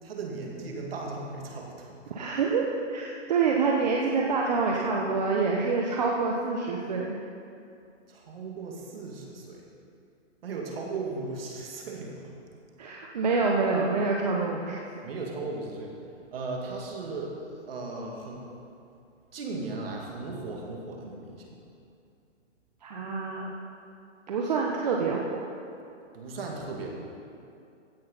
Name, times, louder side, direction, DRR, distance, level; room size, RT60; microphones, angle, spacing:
voice 1, 0.0-2.0 8.1-9.6 10.4-12.3 15.0-15.9 16.3-17.4 17.6-18.4 19.3-21.5 26.1-26.9, right 3 dB, 50° right, 0 dB, 2.4 m, -36 dB
voice 2, 2.1-7.2 12.8-14.8 22.8-23.5 24.3-25.5, right 4 dB, 35° right, -1 dB, 0.9 m, -27 dB
15.5 x 6.4 x 5.6 m, 2.5 s
hypercardioid pair, 165°, 37 cm